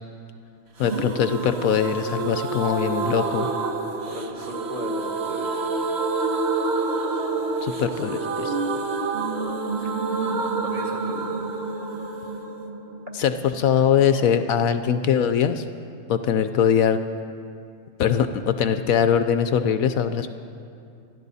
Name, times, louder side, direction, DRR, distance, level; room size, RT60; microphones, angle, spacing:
voice 1, 0.8-3.5 7.6-8.5 13.2-15.6 16.1-17.0 18.0-20.3, left 8 dB, 75° left, 10 dB, 1.0 m, -22 dB
sound 1, 0.8-14.4 14.7-14.8 15.0-15.1, right 3 dB, 50° right, 1.3 m, -28 dB
voice 2, 4.0-5.7 8.7-8.8 9.8-9.9 10.6-11.2, equal, 30° right, -1 dB, 2.3 m, -36 dB
25.0 x 13.5 x 4.1 m, 2.5 s
omnidirectional pair, 1.6 m